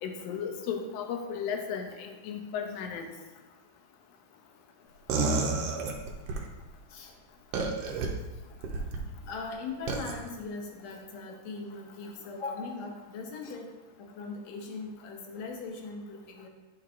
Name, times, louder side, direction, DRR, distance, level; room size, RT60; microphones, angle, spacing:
voice 1, 0.0-3.1 13.4-13.5, left 7 dB, 90° left, 4 dB, 1.4 m, -35 dB
sound 1, 5.1-6.4 7.5-8.1 8.6-9.0 9.9-10.1, right 3 dB, 75° right, 1.4 m, -29 dB
voice 2, 9.3-13.7 14.0-16.5, left 3 dB, 70° left, 1 dB, 1.9 m, -40 dB
11.0 x 4.7 x 2.5 m, 1.2 s
omnidirectional pair, 3.6 m